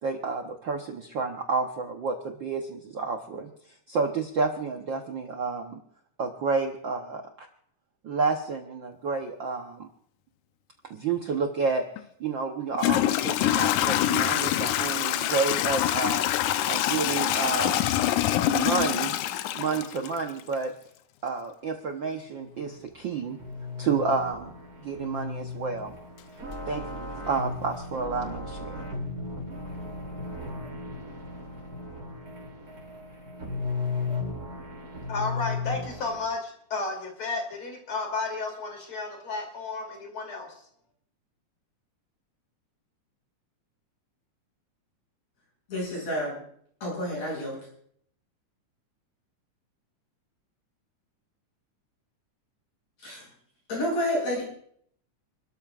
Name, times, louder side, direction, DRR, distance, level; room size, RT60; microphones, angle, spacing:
voice 1, 0.0-3.5 3.9-5.8 6.2-7.5 8.0-9.9 10.9-11.8 12.2-16.3 16.6-17.9 18.5-19.2 19.5-20.7 21.2-23.4 23.8-24.5 24.8-26.0 26.7-28.8, right 4 dB, 70° right, 3 dB, 1.1 m, -30 dB
Toilet flush / Trickle dribble, 12.0-12.1 12.7-20.5, left 13 dB, 80° left, 2.1 m, -25 dB
sound 1, 22.4-36.2, left 3 dB, 35° right, 4.1 m, -36 dB
voice 2, 35.1-40.5, left 3 dB, 45° left, 2 dB, 3.7 m, -33 dB
voice 3, 45.7-46.3 46.8-47.6 53.0-53.2 53.7-54.4, equal, 60° left, -4 dB, 7.9 m, -29 dB
29.5 x 13.0 x 2.4 m, 0.65 s
omnidirectional pair, 3.5 m